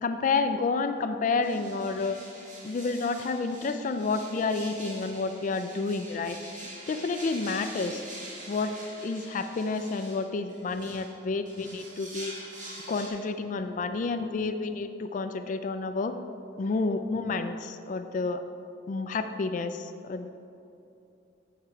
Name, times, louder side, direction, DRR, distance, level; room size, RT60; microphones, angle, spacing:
voice 1, 0.0-2.2 2.6-6.4 6.9-8.0 8.5-12.3 12.9-16.1 16.6-18.4 18.9-20.3, left 4 dB, 45° left, 8 dB, 0.3 m, -30 dB
sound 1, 1.4-13.1, right 1 dB, 45° right, 2.0 m, -45 dB
7.3 x 6.8 x 4.5 m, 2.8 s
head